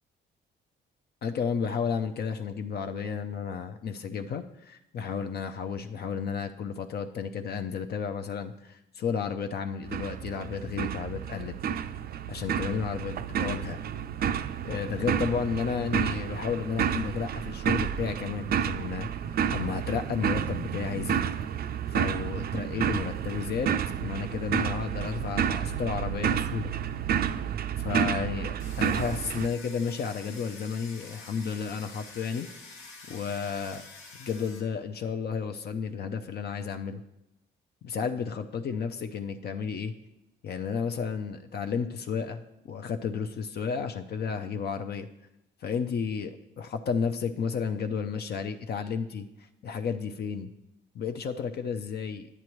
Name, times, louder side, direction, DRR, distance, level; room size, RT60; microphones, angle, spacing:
voice 1, 1.2-11.5 12.3-13.8 14.6-21.2 21.9-26.7 27.8-32.5 33.1-33.8 34.2-37.0 37.8-39.9 40.4-45.1 45.6-50.5 50.9-52.3, left 6 dB, 55° left, 7 dB, 0.5 m, -32 dB
sound 1, 9.8-29.5, right 8 dB, 50° right, 0.4 m, -30 dB
Domestic sounds home sounds, 28.6-34.6, left 3 dB, 80° left, 1.5 m, -47 dB
9.6 x 8.0 x 3.1 m, 0.86 s
cardioid pair, 90°, 20 cm